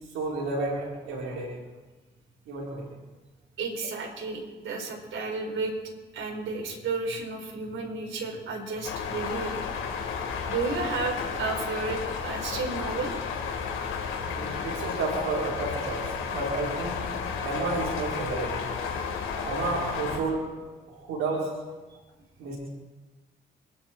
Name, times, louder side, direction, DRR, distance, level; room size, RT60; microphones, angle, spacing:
voice 1, 0.1-1.5 2.5-2.9 14.2-17.0 17.4-18.6 19.4-20.4 20.9-21.5 22.4-22.6, right 3 dB, 85° right, -4 dB, 4.3 m, -31 dB
voice 2, 3.6-5.7 6.1-9.6 10.5-13.1, right 3 dB, 70° right, 0 dB, 4.4 m, -32 dB
sound 1, 8.8-20.2, left 6 dB, 80° left, 3.9 m, -32 dB
27.0 x 11.0 x 4.5 m, 1.2 s
supercardioid pair, 50°, 21 cm